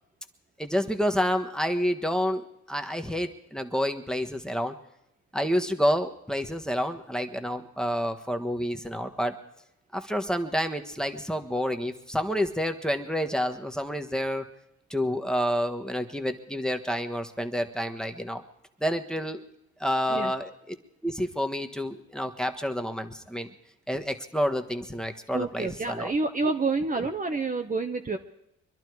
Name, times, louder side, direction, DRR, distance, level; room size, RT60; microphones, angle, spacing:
voice 1, 0.6-4.7 5.3-9.3 9.9-14.5 14.9-18.4 18.8-19.4 19.8-20.7 21.0-23.5 23.9-26.1, equal, ahead, 5 dB, 1.4 m, -29 dB
voice 2, 25.3-28.2, right 3 dB, 25° right, 5 dB, 1.0 m, -28 dB
24.0 x 11.5 x 4.7 m, 0.83 s
cardioid pair, 90°, 30 cm